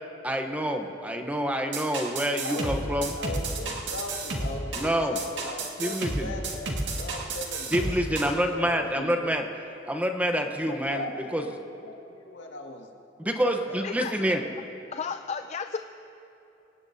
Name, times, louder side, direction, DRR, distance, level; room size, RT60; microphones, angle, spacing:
voice 1, 0.2-3.2 4.7-5.2 5.8-6.3 7.7-9.5 9.8-11.4 13.2-14.4, equal, 10° right, 5 dB, 0.8 m, -27 dB
sound 1, 1.7-8.4, right 2 dB, 75° right, 1.9 m, -32 dB
voice 2, 2.4-9.3 10.7-14.7, left 2 dB, 75° left, 1 dB, 1.9 m, -39 dB
voice 3, 14.9-15.8, left 6 dB, 35° left, 8 dB, 0.4 m, -33 dB
25.0 x 17.5 x 2.7 m, 2.9 s
head